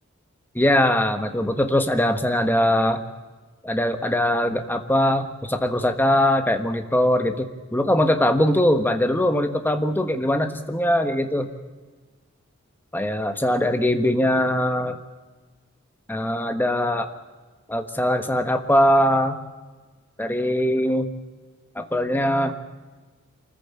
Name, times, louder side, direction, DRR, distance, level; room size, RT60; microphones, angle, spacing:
voice 1, 0.5-3.0 3.6-11.5 12.9-15.0 16.1-17.1 17.7-19.4 20.2-21.1 21.7-22.5, left 1 dB, 10° left, 7 dB, 1.4 m, -21 dB
24.5 x 14.5 x 8.5 m, 1.3 s
head